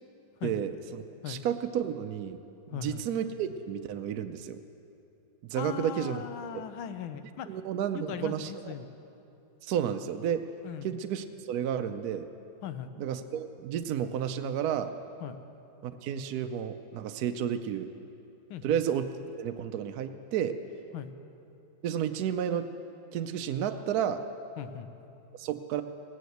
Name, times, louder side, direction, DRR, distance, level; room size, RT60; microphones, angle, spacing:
voice 1, 0.4-2.4 2.7-4.6 5.5-6.2 6.5-6.6 7.5-8.7 9.6-10.4 10.8-12.3 13.0-14.9 15.8-17.9 18.6-19.1 19.4-20.6 21.8-22.7 23.1-24.2 25.4-25.8, right 9 dB, 70° right, 8 dB, 0.9 m, -31 dB
voice 2, 2.7-3.0 5.5-7.5 7.9-8.9 10.6-10.9 12.6-12.9 15.2-15.4 18.5-18.8 20.9-21.1 24.6-24.9, left 9 dB, 80° left, 10 dB, 1.6 m, -38 dB
17.5 x 9.5 x 7.9 m, 2.8 s
omnidirectional pair, 2.2 m